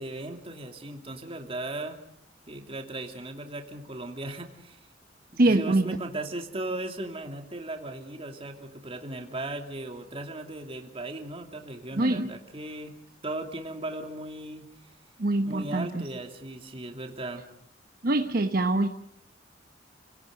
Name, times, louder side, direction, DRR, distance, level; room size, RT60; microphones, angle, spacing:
voice 1, 0.0-2.0 2.5-4.8 5.3-13.0 13.2-14.7 15.5-17.4, right 2 dB, 30° right, 4 dB, 2.7 m, -37 dB
voice 2, 5.4-6.0 11.9-12.3 15.2-16.1 18.0-18.9, right 2 dB, 55° right, 6 dB, 1.1 m, -24 dB
30.0 x 17.5 x 6.6 m, 0.70 s
head